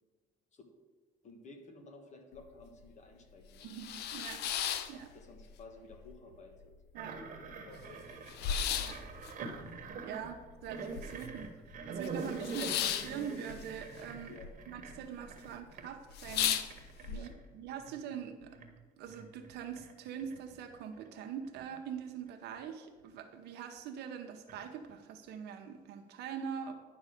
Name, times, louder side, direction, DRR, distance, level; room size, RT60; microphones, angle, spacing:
voice 1, 1.2-3.7 4.9-6.8 7.4-8.6 14.3-14.5 17.1-17.3, left 3 dB, 45° left, 4 dB, 1.6 m, -54 dB
sound 1, 2.4-2.5 2.9-3.0 3.4-5.6 5.9-6.7 7.0-7.1 7.3-11.4 11.7-14.5 14.8-15.3 15.7-15.8 16.1-17.2, left 9 dB, 75° left, 0.6 m, -36 dB
voice 2, 3.6-4.4 4.9-5.1 6.9-7.2 8.8-9.0 10.0-11.5 11.9-14.3 14.7-18.6 19.0-26.7, right 8 dB, 80° right, 4 dB, 0.9 m, -43 dB
sound 2, 7.0-15.9 16.2-21.8 22.1-22.6 23.2-23.3 24.5-25.0, right 4 dB, 50° right, 1.4 m, -45 dB
10.5 x 4.0 x 6.5 m, 1.4 s
cardioid pair, 110°, 17 cm